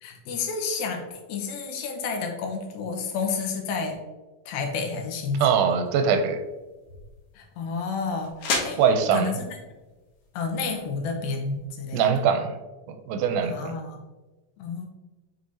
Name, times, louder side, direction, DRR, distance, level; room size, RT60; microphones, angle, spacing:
voice 1, 0.0-4.0 4.5-5.4 7.4-8.4 8.6-8.8 9.1-9.5 10.3-12.0 13.5-14.0 14.6-14.9, left 4 dB, 90° left, 2 dB, 2.7 m, -30 dB
voice 2, 5.4-6.4 8.7-9.4 11.9-12.6 12.9-13.8, right 6 dB, 90° right, 7 dB, 2.4 m, -22 dB
sound 1, 5.7-11.7, left 3 dB, 75° left, 1.3 m, -36 dB
7.6 x 5.0 x 2.7 m, 1.2 s
omnidirectional pair, 4.1 m